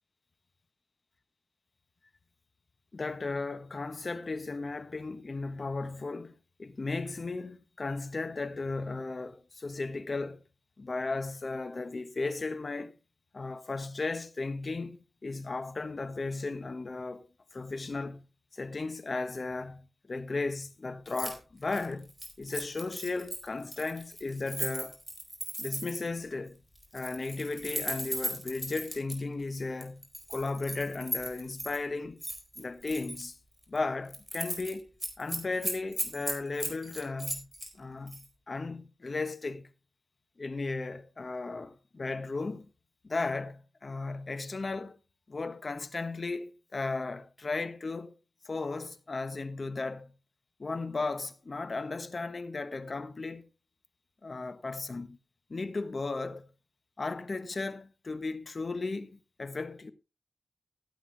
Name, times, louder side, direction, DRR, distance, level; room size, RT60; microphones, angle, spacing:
voice 1, 2.9-6.3 6.6-10.4 10.8-12.9 13.3-15.0 15.2-18.3 18.5-22.1 22.4-25.0 25.6-26.6 26.9-32.2 32.6-33.4 33.7-37.5 37.7-39.7 40.4-42.7 43.0-44.9 45.3-48.2 48.4-50.1 50.6-53.5 54.2-55.2 55.5-56.5 57.0-59.9, left 3 dB, 45° left, 1.2 m, -35 dB
Keys jangling, 21.1-21.3 21.6-26.1 26.8-29.2 29.8-31.8 32.2-33.3 33.6-33.8 34.1-34.7 35.0-37.7 38.1-38.3, equal, 5° right, 4.4 m, -37 dB
15.5 x 8.4 x 3.3 m
cardioid pair, 55°, 0 cm